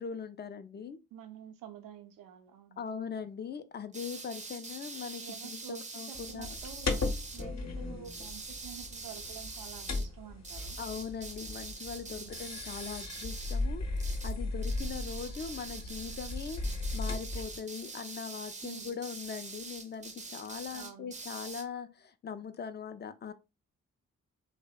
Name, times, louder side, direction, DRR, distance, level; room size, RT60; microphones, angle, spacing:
voice 1, 0.0-1.0 2.8-6.5 10.8-14.0 14.2-23.3, left 6 dB, 30° left, 0.4 m, -41 dB
voice 2, 1.1-2.8 5.2-5.8 6.1-10.8 12.1-12.4 18.6-18.9 20.7-21.1, right 9 dB, 80° right, 0.5 m, -49 dB
sound 1, 3.9-7.5 8.0-10.1 10.4-13.7 14.0-14.4 14.6-21.7, right 3 dB, 20° right, 0.5 m, -44 dB
sound 2, 6.1-17.6, left 2 dB, 50° left, 0.8 m, -37 dB
2.6 x 2.0 x 2.3 m
supercardioid pair, 40°, 34 cm